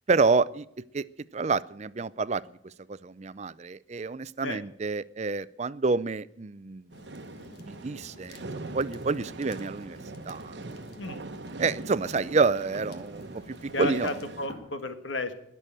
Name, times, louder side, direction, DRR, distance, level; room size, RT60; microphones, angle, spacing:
voice 1, 0.1-0.6 0.9-1.0 1.3-2.4 2.9-6.9 7.7-8.4 8.7-10.0 10.3-10.6 11.6-14.2, right 4 dB, 35° right, 17 dB, 0.5 m, -28 dB
sound 1, 6.9-14.3, left 2 dB, 55° left, 1.5 m, -52 dB
sound 2, 6.9-14.5, right 2 dB, 65° right, 1.0 m, -42 dB
sound 3, 8.7-14.5, right 1 dB, 20° left, 4.2 m, -57 dB
voice 2, 13.7-15.3, left 2 dB, 80° left, 8 dB, 1.7 m, -33 dB
20.5 x 6.9 x 8.8 m, 0.76 s
head